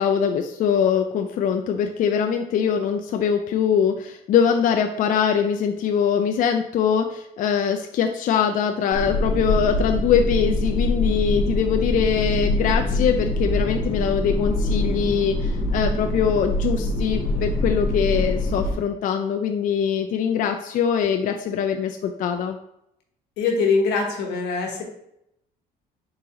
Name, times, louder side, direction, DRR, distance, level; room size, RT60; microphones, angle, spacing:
voice 1, 0.0-22.6, left 7 dB, 50° left, 4 dB, 0.4 m, -22 dB
sound 1, 8.9-18.7, left 1 dB, 35° left, 1.0 m, -24 dB
voice 2, 23.4-24.8, left 4 dB, 85° left, 1 dB, 1.0 m, -22 dB
3.9 x 3.9 x 2.8 m, 0.78 s
cardioid pair, 110°, 17 cm